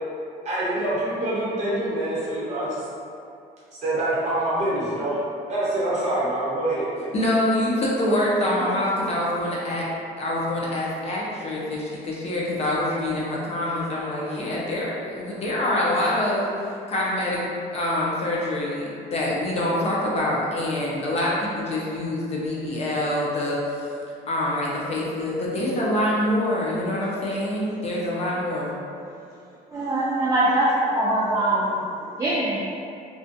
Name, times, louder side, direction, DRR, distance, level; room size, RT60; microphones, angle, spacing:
voice 1, 0.4-2.9 3.7-5.2 5.5-7.1, right 1 dB, 45° right, -9 dB, 1.0 m, -25 dB
voice 2, 7.1-9.9 10.2-16.5 16.9-23.6 24.3-28.7, left 1 dB, 40° left, -5 dB, 0.5 m, -25 dB
voice 3, 29.7-32.6, right 1 dB, 15° right, -7 dB, 0.4 m, -23 dB
2.4 x 2.2 x 2.5 m, 2.5 s
cardioid pair, 110°, 17 cm